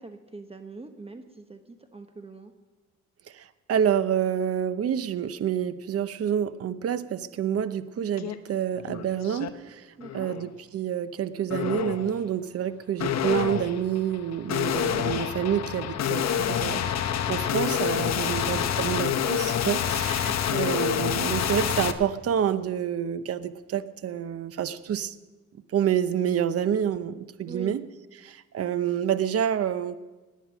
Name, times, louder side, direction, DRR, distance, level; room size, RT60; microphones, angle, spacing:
voice 1, 0.0-2.5 10.0-10.3 15.0-15.2 18.0-18.1 18.5-18.9 27.5-27.7, right 3 dB, 20° right, 6 dB, 1.1 m, -43 dB
voice 2, 3.3-9.9 10.1-25.1 25.7-27.9 28.2-30.0, right 9 dB, 50° right, 13 dB, 0.8 m, -28 dB
sound 1, 8.2-8.4 8.8-9.5 10.0-10.4 11.5-12.1 13.0-21.9, left 9 dB, 60° left, 1.0 m, -27 dB
17.5 x 10.5 x 6.1 m, 1.2 s
cardioid pair, 90°, 30 cm